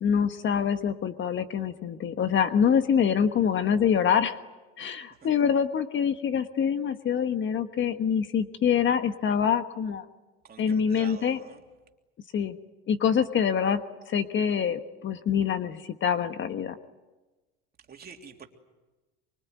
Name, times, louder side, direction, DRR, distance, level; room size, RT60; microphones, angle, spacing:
voice 1, 0.0-4.4 4.8-10.0 10.6-11.4 12.3-12.6 12.9-13.8 14.1-16.8, left 7 dB, 40° left, 9 dB, 1.3 m, -25 dB
voice 2, 10.4-11.6 17.9-18.5, right 6 dB, 30° right, 3 dB, 3.2 m, -47 dB
24.5 x 24.5 x 9.6 m, 1.2 s
supercardioid pair, 110°, 30 cm